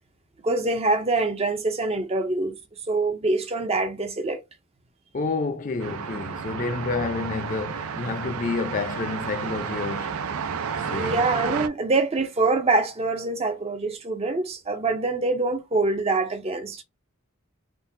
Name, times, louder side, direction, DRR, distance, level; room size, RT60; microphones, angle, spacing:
voice 1, 0.4-2.6 2.9-4.4 10.9-16.8, right 3 dB, 30° right, 0.5 m, -25 dB
voice 2, 5.1-10.3 10.8-11.2, left 4 dB, 40° left, 0.5 m, -29 dB
sound 1, 5.8-11.7, right 6 dB, 85° right, 0.4 m, -31 dB
3.7 x 2.2 x 2.6 m
head